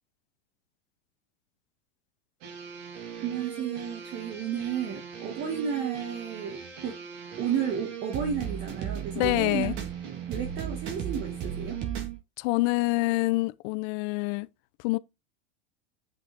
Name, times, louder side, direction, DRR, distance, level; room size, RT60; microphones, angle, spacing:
sound 1, 2.4-12.2, right 8 dB, 55° right, 3.5 m, -37 dB
voice 1, 3.2-7.0 7.4-9.7 10.3-11.8, right 8 dB, 35° right, 1.7 m, -32 dB
voice 2, 9.1-9.7 12.4-14.5 14.8-15.0, left 22 dB, 50° left, 0.6 m, -26 dB
7.5 x 6.5 x 3.4 m
supercardioid pair, 140°, 32 cm